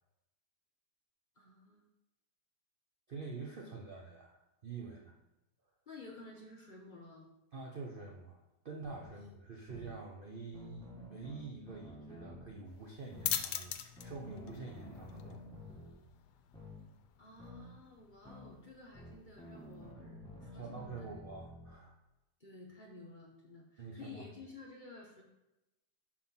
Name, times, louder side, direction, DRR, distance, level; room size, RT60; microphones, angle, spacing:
voice 1, 1.4-1.8 5.9-7.3 17.2-21.2 22.4-25.2, left 3 dB, 35° left, -1 dB, 0.9 m, -53 dB
voice 2, 3.1-5.2 7.5-15.5 20.5-21.9 23.8-24.2, right 4 dB, 50° right, -1 dB, 0.6 m, -47 dB
sound 1, 8.8-9.1 9.7-9.9 10.5-12.5 13.1-13.4 14.0-15.9 16.5-16.8 17.4-17.7 18.2-18.5 18.9-21.7, left 1 dB, 5° left, 1.1 m, -51 dB
sound 2, 12.7-19.9, left 10 dB, 80° left, 1.1 m, -44 dB
5.6 x 4.4 x 5.8 m, 0.97 s
omnidirectional pair, 1.8 m